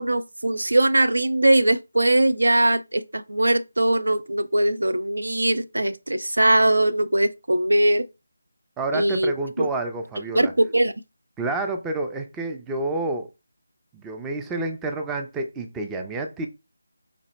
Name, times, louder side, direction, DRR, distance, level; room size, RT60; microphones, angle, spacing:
voice 1, 0.0-8.1 8.9-9.3 9.6-9.7 10.3-10.9, right 1 dB, 80° right, 0.4 m, -21 dB
voice 2, 8.8-10.5 11.4-13.3 13.9-16.5, right 2 dB, 10° right, 0.3 m, -29 dB
4.2 x 2.0 x 4.0 m
figure-of-eight pair, 160°, 0 cm